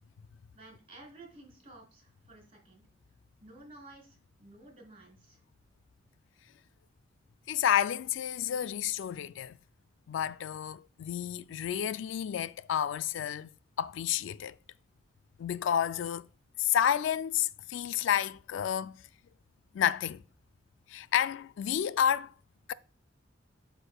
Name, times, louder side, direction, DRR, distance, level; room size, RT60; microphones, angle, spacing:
voice 1, 0.5-2.8 3.4-5.4, right 2 dB, 30° right, 3.7 m, -53 dB
voice 2, 7.5-9.6 10.1-13.5 13.8-14.6 15.4-16.3 16.6-19.0 19.7-20.2 20.9-22.3 22.7-22.8, left 9 dB, 75° left, 0.3 m, -30 dB
12.0 x 4.5 x 2.3 m
head